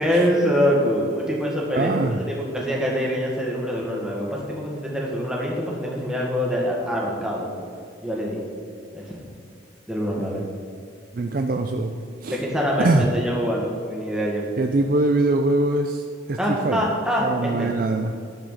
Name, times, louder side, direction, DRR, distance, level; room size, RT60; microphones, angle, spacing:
voice 1, 0.0-7.5 8.0-8.4 8.9-9.2 9.9-10.4 12.3-14.4 16.4-17.7, equal, 5° right, -3 dB, 1.7 m, -24 dB
voice 2, 1.7-2.2 10.2-10.4 11.1-11.9 12.2-12.4 12.8-13.1 14.6-16.9 17.2-18.1, right 2 dB, 45° right, 5 dB, 0.4 m, -23 dB
10.5 x 4.8 x 6.5 m, 2.3 s
head